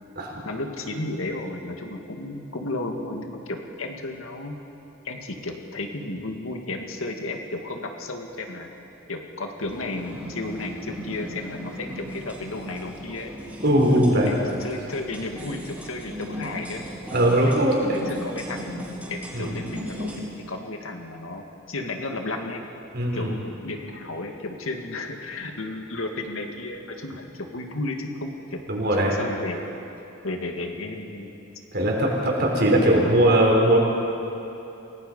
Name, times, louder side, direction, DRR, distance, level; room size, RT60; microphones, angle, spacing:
voice 1, 0.5-4.6 5.0-8.7 9.1-13.3 13.9-16.9 17.5-18.8 19.1-22.6 23.1-29.7 30.2-31.3, left 2 dB, 85° left, 3 dB, 2.1 m, -33 dB
sound 1, 9.6-20.2, equal, 5° right, 4.5 m, -37 dB
voice 2, 13.6-14.3 17.1-18.0 19.3-19.5 22.9-23.3 28.7-29.1 31.7-33.8, right 1 dB, 50° right, -1 dB, 4.4 m, -20 dB
28.0 x 18.5 x 5.5 m, 2.9 s
head